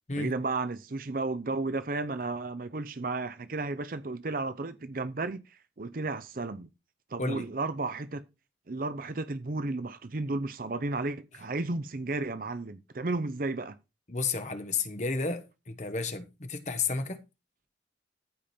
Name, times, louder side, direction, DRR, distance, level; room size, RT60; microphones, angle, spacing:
voice 1, 0.2-6.7 7.1-8.2 8.7-13.8, right 3 dB, 50° right, 0.6 m, -33 dB
voice 2, 14.1-17.2, left 4 dB, 40° left, 1.2 m, -32 dB
14.0 x 5.1 x 4.3 m
head